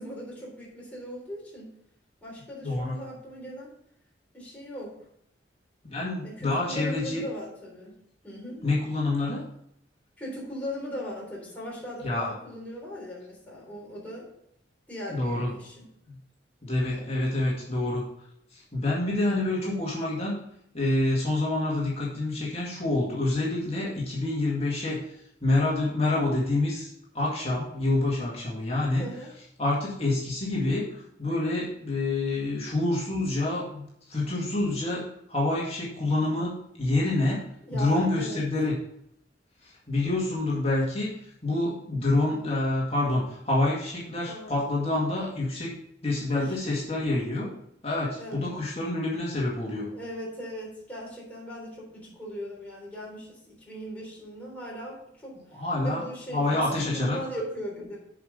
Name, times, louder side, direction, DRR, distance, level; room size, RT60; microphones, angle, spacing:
voice 1, 0.0-1.7 2.2-3.7 4.3-4.9 6.2-7.9 8.2-8.6 10.2-14.3 14.9-15.9 16.9-17.2 29.0-29.3 37.6-38.4 44.3-44.5 46.3-46.5 48.2-48.5 49.9-55.3 55.8-58.0, equal, 10° left, -5 dB, 3.6 m, -39 dB
voice 2, 2.6-3.0 5.9-7.2 8.6-9.4 12.0-12.3 15.1-15.5 16.1-16.2 16.6-18.0 18.5-20.4 20.7-25.0 25.4-26.9 27.1-29.1 29.6-30.9 31.2-38.7 39.6-41.1 41.4-45.8 46.0-47.5 47.8-49.9 55.5-56.0 56.3-57.2, left 2 dB, 35° left, -5 dB, 2.1 m, -27 dB
7.8 x 5.2 x 6.4 m, 0.74 s
head